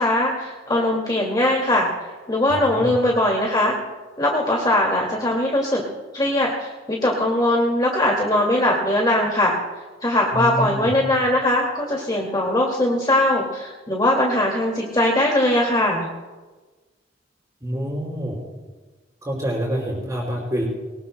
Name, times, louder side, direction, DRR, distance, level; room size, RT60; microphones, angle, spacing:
voice 1, 0.0-3.8 4.2-5.8 6.1-9.5 10.0-16.1, left 1 dB, 25° left, -1 dB, 2.2 m, -20 dB
voice 2, 2.5-2.9 10.3-10.9 17.6-18.4 19.2-20.6, equal, 20° right, -5 dB, 4.7 m, -27 dB
23.0 x 20.5 x 2.2 m, 1.3 s
head